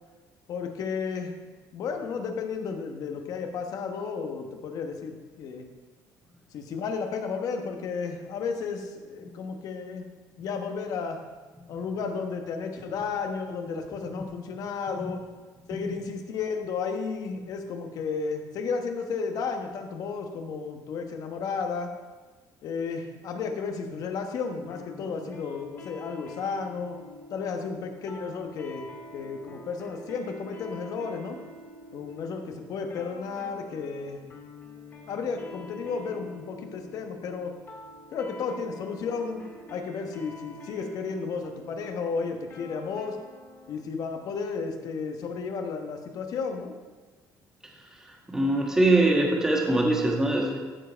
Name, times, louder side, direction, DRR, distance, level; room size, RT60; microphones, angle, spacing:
voice 1, 0.5-1.3 1.7-5.7 6.5-10.0 10.4-11.2 11.7-15.2 15.7-21.9 22.6-27.0 27.3-31.4 31.9-34.2 35.1-37.5 38.1-39.4 39.7-43.2 43.7-46.8, left 5 dB, 60° left, 5 dB, 1.1 m, -33 dB
sound 1, 24.7-43.8, left 1 dB, 35° left, 2.2 m, -47 dB
voice 2, 48.3-50.6, right 2 dB, 10° right, 0 dB, 1.6 m, -23 dB
14.0 x 4.8 x 4.5 m, 1.3 s
cardioid pair, 120°, 7 cm